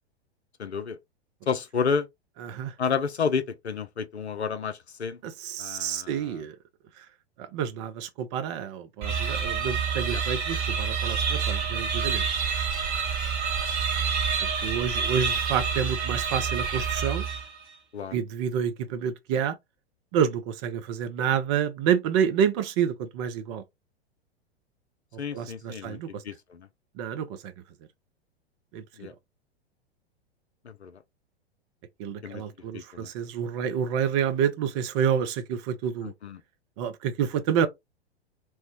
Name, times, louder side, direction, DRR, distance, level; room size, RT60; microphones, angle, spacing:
voice 1, 0.6-1.0 1.5-2.1 2.8-5.2 5.6-6.4 10.1-10.2 17.9-18.2 25.2-26.7 29.0-29.1 30.6-31.0 32.2-32.4 32.7-33.1 36.0-36.4, left 6 dB, 90° left, 0.5 m, -31 dB
voice 2, 2.4-2.7 5.2-6.6 7.0-7.1 7.4-12.2 14.4-17.3 18.1-19.6 20.1-23.6 25.3-26.2 27.0-27.5 28.7-29.1 32.0-36.1 36.8-37.7, right 8 dB, 30° right, 0.4 m, -28 dB
sound 1, 9.0-17.7, right 6 dB, 45° right, 0.9 m, -28 dB
3.0 x 2.0 x 2.8 m
figure-of-eight pair, 100°, 32 cm